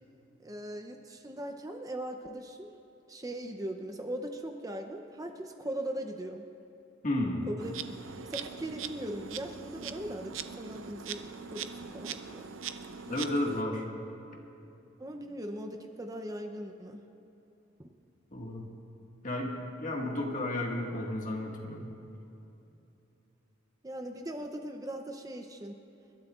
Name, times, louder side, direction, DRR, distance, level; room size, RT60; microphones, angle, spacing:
voice 1, 0.4-2.7 3.1-6.4 7.5-7.7 8.2-12.5 15.0-17.0 17.8-17.9 23.8-25.8, right 1 dB, 20° right, 4 dB, 0.6 m, -39 dB
voice 2, 7.0-7.5 13.1-13.8 18.3-18.7 19.2-21.9, left 1 dB, 40° left, 0 dB, 1.7 m, -32 dB
Insect, 7.6-13.6, right 7 dB, 85° right, 0.6 m, -41 dB
28.5 x 12.5 x 2.4 m, 2.9 s
head